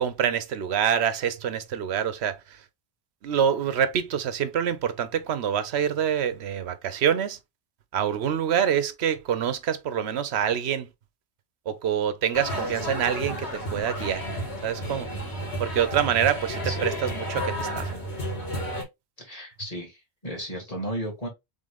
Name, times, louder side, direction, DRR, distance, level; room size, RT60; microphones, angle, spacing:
voice 1, 0.0-2.6 3.2-7.4 7.9-10.9 11.7-14.2 14.6-15.1 15.6-18.0, right 8 dB, 75° right, 0.9 m, -26 dB
sound 1, 12.3-18.8, equal, 85° left, 2.1 m, -32 dB
voice 2, 19.2-21.3, equal, 35° left, 1.9 m, -34 dB
3.8 x 3.6 x 3.5 m
omnidirectional pair, 1.1 m